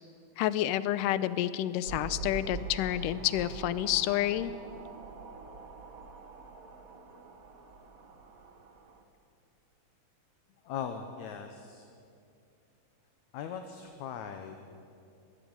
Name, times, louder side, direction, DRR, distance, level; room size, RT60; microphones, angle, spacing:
voice 1, 0.4-4.5, left 13 dB, 90° left, 15 dB, 2.3 m, -29 dB
sound 1, 1.9-9.0, right 4 dB, 85° right, 0.7 m, -44 dB
voice 2, 10.6-11.9 13.3-14.6, left 7 dB, 70° left, 6 dB, 2.2 m, -39 dB
20.5 x 14.5 x 8.9 m, 2.5 s
omnidirectional pair, 3.7 m